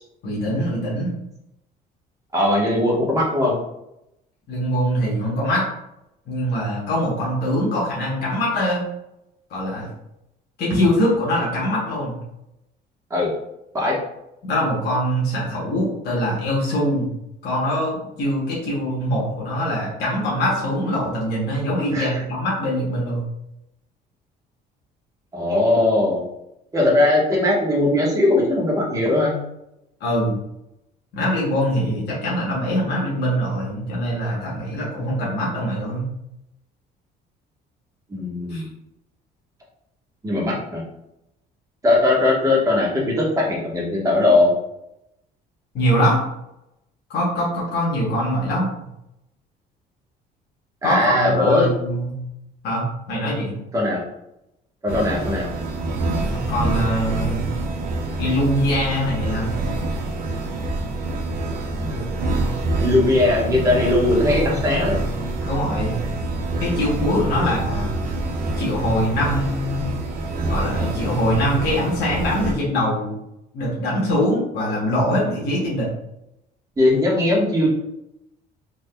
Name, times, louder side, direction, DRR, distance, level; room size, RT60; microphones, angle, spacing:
voice 1, 0.2-1.1 4.5-5.7 6.3-8.8 9.5-9.9 10.6-12.1 14.4-17.1 17.4-23.2 30.0-30.4 31.1-36.1 38.5-38.7 45.7-46.2 47.1-48.7 50.8-52.1 52.6-53.6 56.3-57.4 58.2-59.5 65.4-65.9 66.6-67.9 68.6-69.9 70.5-73.1 73.5-75.9, equal, 65° left, -5 dB, 1.1 m, -23 dB
voice 2, 2.3-3.6 13.1-13.3 13.7-13.9 21.9-22.2 25.3-26.2 26.7-29.3 38.1-38.7 40.2-40.8 41.8-44.5 50.8-51.7 53.7-54.0 54.8-55.5 62.8-65.0 76.8-77.7, left 2 dB, 20° right, -4 dB, 1.2 m, -19 dB
sound 1, 54.9-72.5, right 2 dB, 55° right, 0.7 m, -26 dB
3.5 x 2.9 x 2.2 m, 0.84 s
cardioid pair, 110°, 18 cm